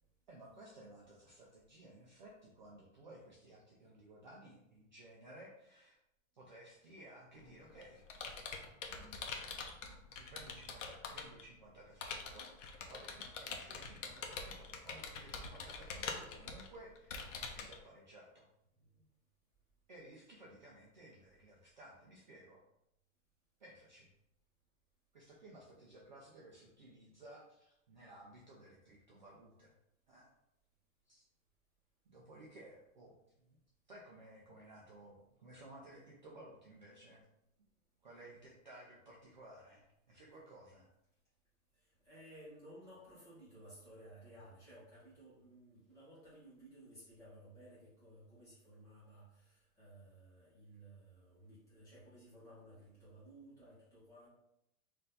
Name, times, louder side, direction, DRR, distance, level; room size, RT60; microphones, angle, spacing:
voice 1, 0.3-6.0 6.3-8.1 8.5-12.5 12.9-18.5 19.9-22.6 23.6-24.1 25.1-29.7 30.1-30.3 31.1-31.2 32.1-33.6 33.9-37.2 38.0-40.9, right 1 dB, 35° right, -4 dB, 0.4 m, -57 dB
Computer keyboard, 7.4-11.4 12.0-17.8, left 5 dB, 60° left, 0.8 m, -44 dB
voice 2, 41.8-54.3, right 1 dB, 5° left, -10 dB, 1.0 m, -57 dB
4.3 x 2.6 x 3.9 m, 0.83 s
supercardioid pair, 180°, 42 cm